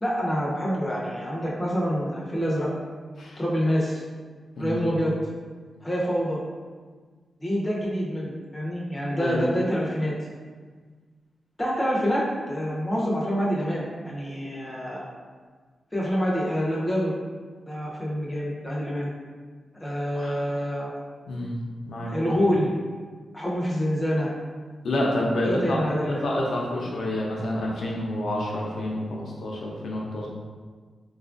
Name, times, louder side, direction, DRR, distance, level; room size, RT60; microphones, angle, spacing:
voice 1, 0.0-2.7 3.4-4.0 4.6-5.1 5.8-6.4 7.4-10.1 11.6-15.1 15.9-17.1 17.7-19.1 19.8-20.9 22.1-22.7 23.3-24.3 25.4-26.3, equal, 15° left, -5 dB, 0.7 m, -26 dB
voice 2, 9.2-9.5 20.1-20.4 21.3-21.5 21.9-22.1 24.8-30.3, left 1 dB, 80° left, -3 dB, 0.6 m, -28 dB
4.1 x 2.3 x 2.5 m, 1.5 s
wide cardioid pair, 150°, 0 cm